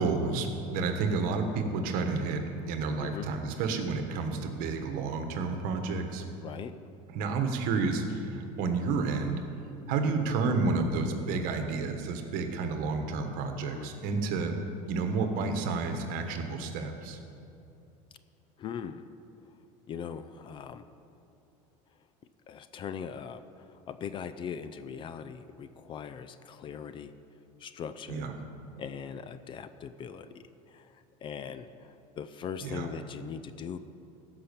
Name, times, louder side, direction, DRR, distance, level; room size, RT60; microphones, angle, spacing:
voice 1, 0.0-6.2 7.1-9.4 9.9-14.5 14.9-17.2 28.1-28.4 32.6-32.9, right 4 dB, 60° right, 6 dB, 1.3 m, -30 dB
voice 2, 6.4-6.7 13.6-13.9 18.6-19.0 19.9-20.8 22.5-23.4 23.9-27.1 27.6-28.3 28.8-30.9 31.2-33.8, left 7 dB, 30° left, 12 dB, 0.4 m, -40 dB
15.0 x 5.7 x 6.8 m, 2.7 s
supercardioid pair, 140°, 16 cm